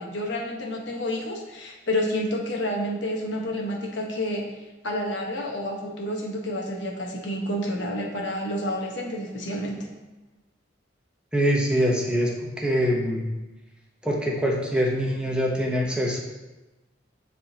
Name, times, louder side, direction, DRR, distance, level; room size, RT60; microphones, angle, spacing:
voice 1, 0.0-4.5 4.8-9.9, left 1 dB, 70° left, -1 dB, 1.1 m, -29 dB
voice 2, 11.3-13.2 14.0-16.2, equal, 5° right, -2 dB, 0.8 m, -24 dB
9.7 x 3.6 x 2.8 m, 1.1 s
head